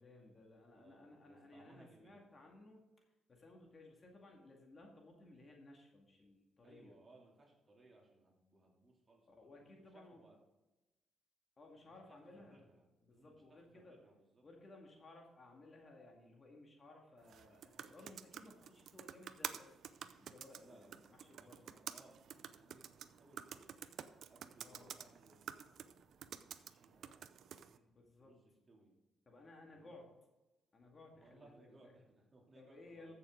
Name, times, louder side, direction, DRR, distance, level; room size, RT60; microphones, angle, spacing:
voice 1, 0.0-2.8 3.3-7.0 9.3-10.2 11.6-12.6 13.0-14.0 14.4-19.9 20.2-21.8 24.6-24.9 27.9-28.3 29.3-30.1 30.7-31.9 32.5-33.1, left 2 dB, 35° left, 1 dB, 2.2 m, -59 dB
voice 2, 0.7-2.3 6.6-10.4 12.1-13.4 13.7-14.4 20.6-23.9 24.3-27.9 28.2-28.9 29.7-30.0 31.1-33.1, right 2 dB, 30° right, -2 dB, 3.1 m, -65 dB
sound 1, 17.2-27.8, right 8 dB, 65° right, 0.5 m, -50 dB
14.5 x 6.8 x 3.9 m, 1.1 s
cardioid pair, 90°, 0 cm